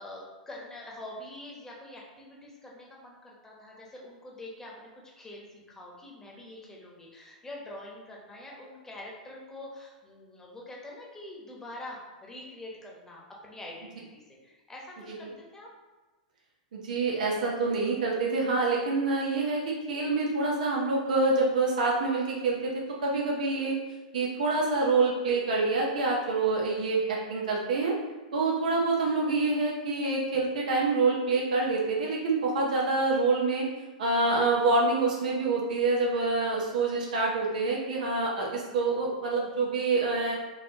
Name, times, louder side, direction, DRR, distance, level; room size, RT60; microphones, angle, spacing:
voice 1, 0.0-4.9 5.2-15.7, left 1 dB, 10° left, -3 dB, 1.1 m, -45 dB
voice 2, 16.7-23.7 24.1-27.9 28.3-33.7 34.0-40.4, right 3 dB, 75° right, -2 dB, 0.8 m, -26 dB
4.6 x 2.7 x 2.8 m, 1.2 s
hypercardioid pair, 105°, 4 cm